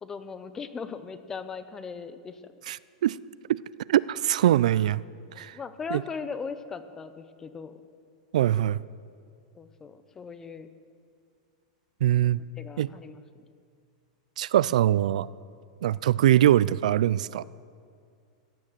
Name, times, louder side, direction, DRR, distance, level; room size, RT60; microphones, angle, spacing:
voice 1, 0.0-2.5 5.3-7.8 9.5-10.7 12.3-13.2, left 5 dB, 10° left, 12 dB, 0.5 m, -39 dB
voice 2, 2.7-3.2 3.5-3.6 3.9-5.0 5.4-5.6 5.9-6.0 8.3-8.8 12.0-12.4 12.8-12.9 14.4-15.3 15.8-17.4, right 12 dB, 75° right, 20 dB, 0.3 m, -22 dB
15.5 x 9.2 x 7.4 m, 2.2 s
supercardioid pair, 170°, 4 cm